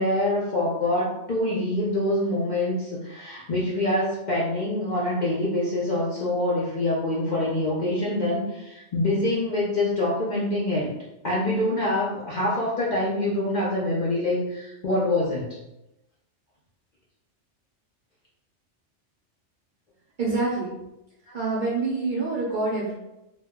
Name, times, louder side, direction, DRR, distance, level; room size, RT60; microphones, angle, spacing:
voice 1, 0.0-10.9 11.2-15.5, left 1 dB, 55° left, -6 dB, 0.5 m, -25 dB
voice 2, 20.2-20.8 21.3-22.9, right 3 dB, 55° right, -4 dB, 0.6 m, -26 dB
2.2 x 2.0 x 3.5 m, 0.93 s
omnidirectional pair, 1.2 m